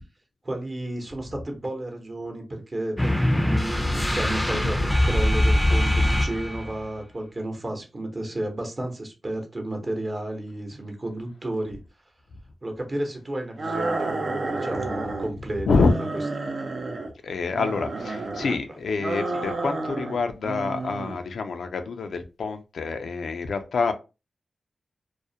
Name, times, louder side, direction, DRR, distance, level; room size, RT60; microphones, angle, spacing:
voice 1, 0.4-11.8 12.6-16.1 18.5-18.8 19.3-19.5, right 1 dB, 40° right, 0.8 m, -32 dB
sound 1, 3.0-6.8, left 1 dB, 10° left, 0.4 m, -22 dB
sound 2, 13.6-15.3 15.7-17.1 17.5-18.6 19.0-20.2 20.4-21.2, right 2 dB, 65° right, 0.4 m, -30 dB
voice 2, 17.2-23.9, left 4 dB, 80° left, 0.3 m, -26 dB
2.4 x 2.0 x 2.7 m
cardioid pair, 45°, 0 cm